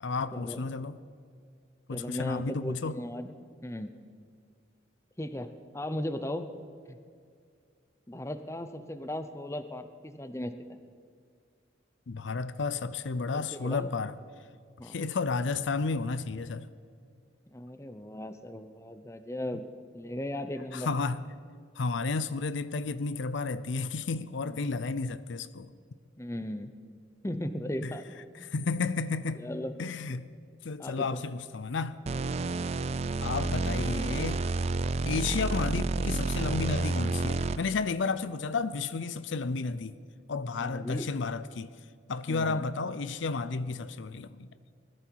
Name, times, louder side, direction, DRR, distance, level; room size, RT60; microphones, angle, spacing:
voice 1, 0.0-1.0 1.9-3.0 12.1-14.1 14.8-16.7 20.7-21.2 21.8-25.7 27.8-27.9 28.4-29.5 29.8-30.3 30.6-32.0 33.2-34.4 35.0-40.0 40.3-41.7 42.1-44.5, left 4 dB, 75° left, 0.5 m, -32 dB
voice 2, 1.9-3.3 3.6-3.9 5.2-6.5 6.9-7.0 8.1-10.8 13.3-13.9 14.8-15.0 17.5-19.7 19.9-20.9 24.5-24.6 26.2-26.7 27.2-28.5 29.4-29.8 30.8-31.2 40.6-41.1 42.3-42.6, left 1 dB, 15° left, 0.6 m, -37 dB
sound 1, 32.1-37.8, right 3 dB, 30° right, 0.3 m, -30 dB
20.0 x 14.0 x 4.6 m
head